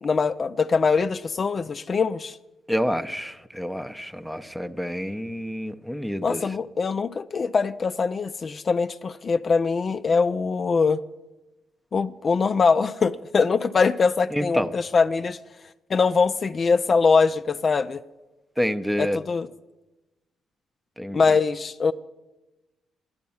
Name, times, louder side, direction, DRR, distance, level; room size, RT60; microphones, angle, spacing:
voice 1, 0.0-2.4 6.2-11.0 11.9-15.4 15.9-18.0 19.0-19.5 21.1-21.9, left 4 dB, 40° left, 0.4 m, -22 dB
voice 2, 2.7-6.6 14.3-14.8 18.6-19.2 21.0-21.4, equal, 5° right, 0.6 m, -28 dB
12.0 x 10.5 x 7.1 m
cardioid pair, 90°, 0 cm